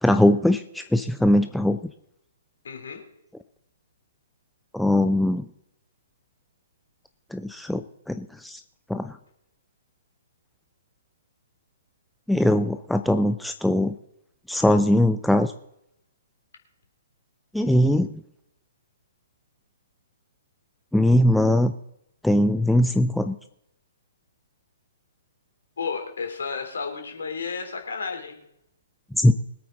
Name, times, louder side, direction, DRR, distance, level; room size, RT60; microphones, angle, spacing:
voice 1, 0.0-1.8 4.7-5.4 7.3-8.6 8.9-9.1 12.3-14.0 14.5-15.5 17.5-18.1 20.9-21.7 22.2-23.4 29.2-29.3, left 1 dB, ahead, 9 dB, 0.5 m, -21 dB
voice 2, 2.6-3.0 25.8-28.4, left 5 dB, 60° left, 3 dB, 3.7 m, -32 dB
23.5 x 8.7 x 4.1 m, 0.78 s
figure-of-eight pair, 120°, 0 cm